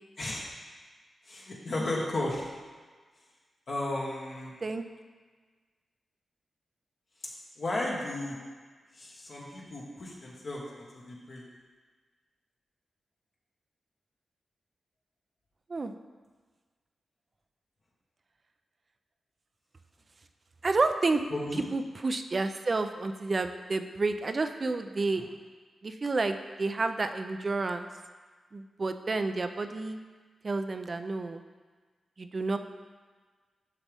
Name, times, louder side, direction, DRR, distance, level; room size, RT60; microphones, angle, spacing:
voice 1, 1.2-2.5 3.7-4.5 7.6-8.4 8.9-11.4 21.3-21.6 25.1-25.3, left 1 dB, 65° left, -5 dB, 1.4 m, -34 dB
voice 2, 20.6-21.2 21.5-25.2 25.8-27.9 28.5-30.0 30.4-31.4 32.2-32.6, right 3 dB, 50° right, 8 dB, 0.5 m, -30 dB
8.3 x 5.9 x 3.5 m, 1.4 s
cardioid pair, 50°, 0 cm